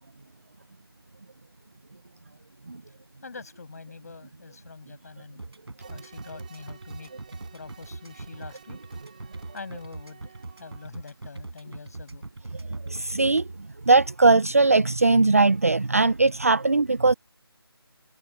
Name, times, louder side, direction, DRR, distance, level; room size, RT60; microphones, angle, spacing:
voice 1, 3.2-5.4 5.9-7.1 7.5-8.8 9.5-12.3, left 4 dB, 40° left, 6.1 m, -44 dB
sound 1, 5.4-13.4, right 2 dB, 85° right, 5.4 m, -40 dB
sound 2, 5.8-11.2, right 7 dB, 20° right, 2.9 m, -53 dB
voice 2, 12.9-13.4 13.9-17.1, right 3 dB, 35° right, 0.5 m, -20 dB
figure-of-eight pair, 175°, 13 cm